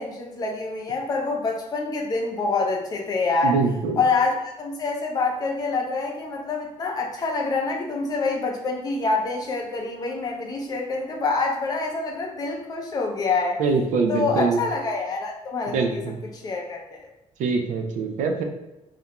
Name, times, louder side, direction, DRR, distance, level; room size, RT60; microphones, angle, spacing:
voice 1, 0.0-3.6 4.0-13.6 14.1-17.0, left 3 dB, 30° left, 0 dB, 0.4 m, -26 dB
voice 2, 3.4-4.0 13.6-14.6 15.7-16.2 17.4-18.4, right 4 dB, 80° right, 4 dB, 0.4 m, -23 dB
2.4 x 2.1 x 2.8 m, 0.97 s
cardioid pair, 170°, 12 cm